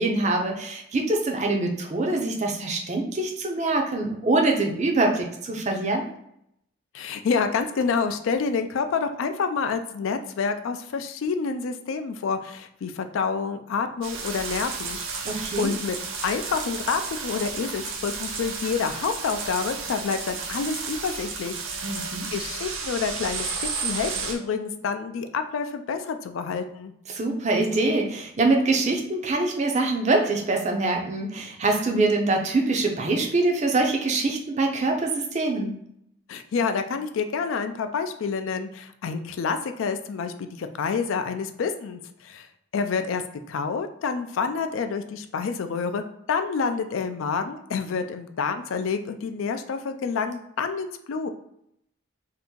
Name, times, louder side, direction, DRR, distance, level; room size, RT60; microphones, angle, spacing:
voice 1, 0.0-6.1 15.2-15.7 21.8-22.3 27.1-35.7, right 2 dB, 35° right, 2 dB, 0.5 m, -24 dB
voice 2, 6.9-15.0 15.6-21.6 21.9-22.0 22.3-26.9 36.3-42.5 42.7-43.2 43.5-51.3, left 5 dB, 70° left, 8 dB, 0.3 m, -28 dB
sound 1, 14.0-24.3, right 5 dB, 80° right, 0.6 m, -33 dB
2.8 x 2.5 x 3.7 m, 0.75 s
head